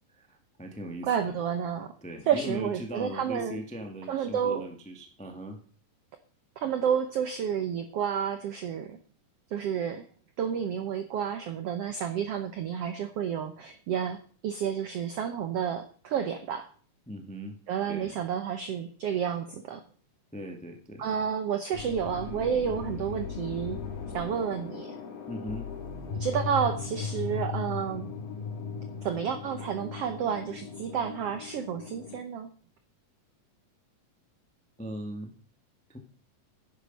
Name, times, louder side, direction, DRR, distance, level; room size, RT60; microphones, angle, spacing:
voice 1, 0.1-1.3 2.0-5.6 17.1-17.6 17.8-18.1 20.3-21.1 25.3-25.7 34.8-35.3 35.9-36.0, equal, 10° left, 3 dB, 0.4 m, -39 dB
voice 2, 1.1-1.9 2.3-3.6 4.1-4.6 6.6-9.0 9.5-10.1 10.4-16.7 17.7-19.8 21.0-23.8 24.1-25.0 26.1-28.1 29.0-32.5, right 8 dB, 80° right, 8 dB, 1.4 m, -30 dB
sound 1, 21.7-32.2, left 5 dB, 85° left, 3.6 m, -37 dB
10.5 x 9.9 x 5.3 m, 0.43 s
omnidirectional pair, 3.9 m